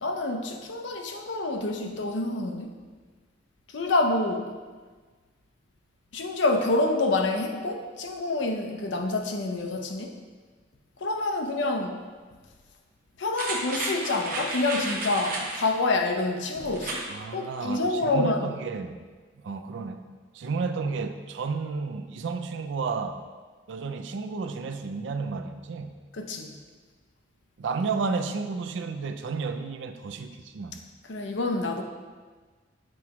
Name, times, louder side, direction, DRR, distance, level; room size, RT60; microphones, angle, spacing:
voice 1, 0.0-2.8 3.7-4.5 6.1-10.1 11.0-12.0 13.2-17.0 17.3-18.5 26.1-26.5 31.1-31.8, left 2 dB, 65° left, 3 dB, 0.6 m, -27 dB
sound 1, 13.3-15.7 16.7-17.1 17.5-17.6, right 2 dB, 45° right, 0.8 m, -32 dB
voice 2, 17.1-19.0 19.4-20.1 20.3-23.2 23.7-26.0 27.6-30.8, right 4 dB, 65° right, 8 dB, 0.4 m, -32 dB
7.6 x 4.7 x 3.0 m, 1.4 s
head